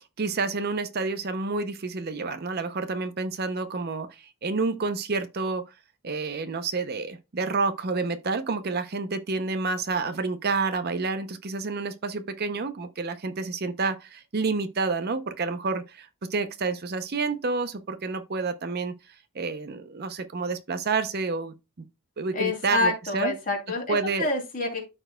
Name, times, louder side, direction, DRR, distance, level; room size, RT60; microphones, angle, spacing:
voice 1, 0.2-5.6 6.0-18.9 19.3-21.9 22.2-23.3 23.9-24.3, right 4 dB, 45° right, 0.6 m, -29 dB
voice 2, 22.3-24.9, left 2 dB, 40° left, 2.9 m, -27 dB
13.5 x 4.4 x 2.2 m
head